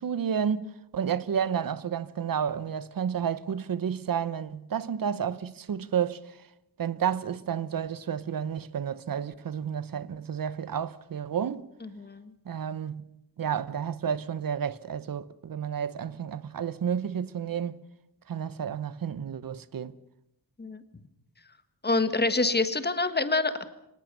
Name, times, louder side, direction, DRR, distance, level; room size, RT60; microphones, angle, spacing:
voice 1, 0.0-6.4 6.8-11.7 12.4-13.0 13.4-17.8 18.3-20.0, right 8 dB, 55° right, 1.0 m, -31 dB
voice 2, 11.8-12.3 20.6-20.8 21.8-23.6, left 3 dB, 25° left, 1.6 m, -26 dB
24.5 x 19.5 x 6.8 m
wide cardioid pair, 135°, 40 cm